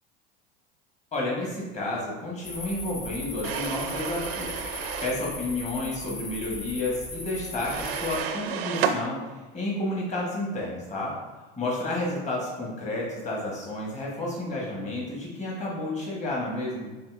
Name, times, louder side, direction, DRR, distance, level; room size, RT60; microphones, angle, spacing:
voice 1, 1.1-4.6 5.0-9.2 9.5-11.2 11.6-16.9, left 2 dB, 25° left, -4 dB, 1.3 m, -31 dB
sound 1, 2.4-8.2, left 3 dB, 45° left, 1.2 m, -38 dB
sound 2, 3.4-5.2 7.6-9.0, right 7 dB, 90° right, 0.4 m, -31 dB
5.7 x 2.8 x 2.5 m, 1.2 s
hypercardioid pair, 90°, 29 cm